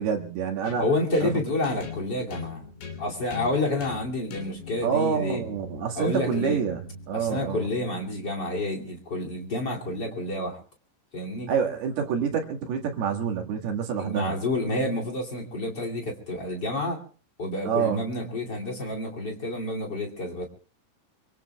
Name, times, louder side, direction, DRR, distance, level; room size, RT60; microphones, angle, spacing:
voice 1, 0.0-0.9 1.2-1.3 4.8-6.8 7.1-7.7 11.5-14.4 17.7-18.0, right 7 dB, 60° right, 2 dB, 3.4 m, -27 dB
sound 1, 0.6-8.4, left 5 dB, 80° left, 5.4 m, -41 dB
voice 2, 0.8-2.6 3.0-5.4 6.0-6.6 7.1-10.6 11.1-11.5 14.0-17.0 17.4-20.4, left 2 dB, 30° left, -1 dB, 2.0 m, -29 dB
26.0 x 24.0 x 2.3 m, 0.39 s
omnidirectional pair, 5.8 m